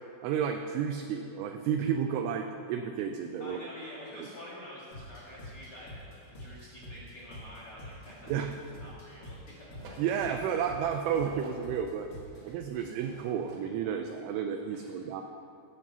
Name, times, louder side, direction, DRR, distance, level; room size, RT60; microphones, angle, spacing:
voice 1, 0.2-3.6 4.2-4.3 8.3-8.5 10.0-12.1 12.4-15.2, right 8 dB, 85° right, 4 dB, 2.8 m, -31 dB
voice 2, 3.4-8.4 8.8-10.1 12.3-12.9 14.7-15.1, left 1 dB, 80° left, -6 dB, 1.2 m, -48 dB
sound 1, 4.9-12.6, left 1 dB, 55° left, 1.1 m, -48 dB
sound 2, 8.0-9.2 9.8-11.9 12.7-13.7 14.0-14.1, right 1 dB, 65° right, 3.6 m, -52 dB
15.5 x 7.6 x 5.5 m, 2.6 s
omnidirectional pair, 5.7 m